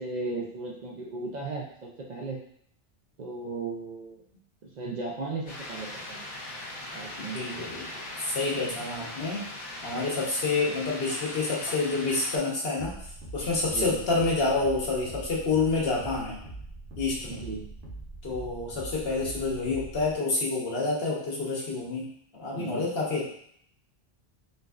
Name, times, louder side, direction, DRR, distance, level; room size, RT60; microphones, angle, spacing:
voice 1, 0.0-2.4 3.2-4.2 4.6-6.3 6.9-7.5 8.5-8.7 13.6-14.0 17.3-17.7 22.5-22.9, right 3 dB, 55° right, -2 dB, 0.6 m, -36 dB
sound 1, 5.5-12.4, left 1 dB, 90° left, 1.1 m, -40 dB
voice 2, 7.2-7.9 8.2-9.4 9.8-12.9 13.3-16.4 17.0-17.4 18.2-22.1 22.4-23.3, left 3 dB, 70° left, -4 dB, 1.2 m, -28 dB
sound 2, 12.8-20.1, right 2 dB, 80° right, 1.1 m, -42 dB
3.9 x 2.6 x 2.3 m, 0.67 s
omnidirectional pair, 1.0 m